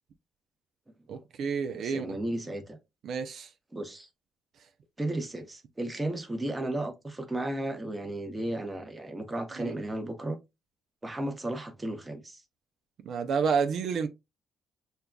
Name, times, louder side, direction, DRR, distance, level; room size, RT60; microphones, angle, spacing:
voice 1, 1.1-2.2 3.0-3.5 9.6-9.7 13.1-14.1, right 6 dB, 70° right, 0.5 m, -29 dB
voice 2, 1.7-2.8 3.7-4.1 5.0-10.4 11.0-12.4, right 1 dB, 15° right, 0.9 m, -34 dB
6.6 x 2.3 x 2.2 m
cardioid pair, 90°, 0 cm